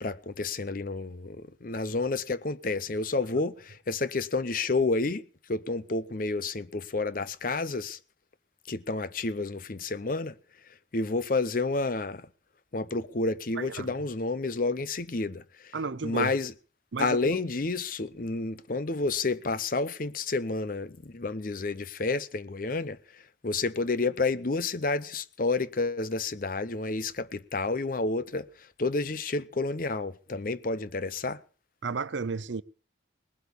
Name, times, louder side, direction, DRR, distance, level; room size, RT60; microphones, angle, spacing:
voice 1, 0.0-8.0 8.7-10.4 10.9-12.3 12.7-15.7 16.0-16.5 17.0-28.5 28.8-31.4, left 3 dB, 45° left, 0.7 m, -30 dB
voice 2, 13.6-13.9 15.7-16.3 16.9-17.4 31.8-32.6, right 4 dB, 75° right, 0.7 m, -33 dB
19.5 x 8.1 x 6.9 m
head